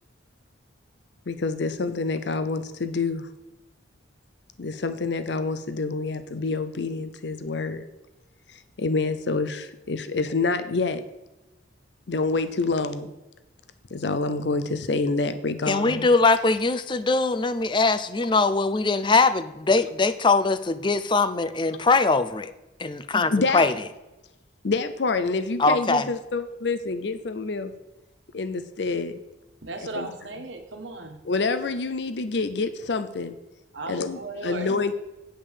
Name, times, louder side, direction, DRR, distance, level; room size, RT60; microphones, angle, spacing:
voice 1, 1.3-3.3 4.6-7.8 8.5-11.0 12.1-13.1 13.9-16.1 23.3-23.7 24.6-27.7 28.3-29.2 29.9-30.1 31.2-33.4 33.9-34.9, left 3 dB, 65° left, 11 dB, 0.6 m, -27 dB
voice 2, 15.7-22.5 22.8-23.7 25.6-26.1, left 3 dB, 25° left, 12 dB, 0.5 m, -22 dB
voice 3, 29.6-31.2 33.7-34.9, right 2 dB, 80° right, 5 dB, 1.4 m, -36 dB
8.8 x 5.1 x 7.2 m, 1.0 s
head